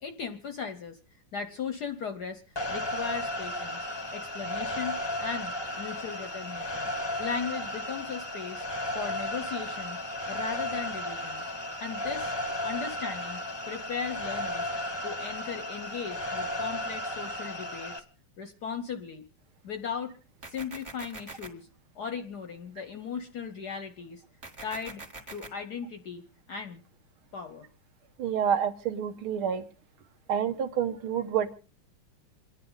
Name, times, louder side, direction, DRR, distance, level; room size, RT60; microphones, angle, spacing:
voice 1, 0.0-1.0 1.3-3.9 4.1-4.9 5.2-6.9 7.2-8.7 8.9-10.0 10.3-11.4 11.8-14.7 15.0-17.9 18.4-19.2 19.6-20.1 20.4-21.7 21.9-24.2 24.6-25.0 25.3-26.2 26.5-26.8 27.3-27.7, left 6 dB, 60° left, 8 dB, 1.2 m, -37 dB
sound 1, 2.6-18.0, left 1 dB, 20° left, 0.7 m, -34 dB
sound 2, 20.4-21.5 24.4-25.5, right 2 dB, 25° right, 1.8 m, -43 dB
voice 2, 28.2-29.6 30.3-31.5, right 8 dB, 75° right, 9 dB, 2.0 m, -28 dB
28.0 x 10.0 x 3.9 m, 0.36 s
omnidirectional pair, 2.4 m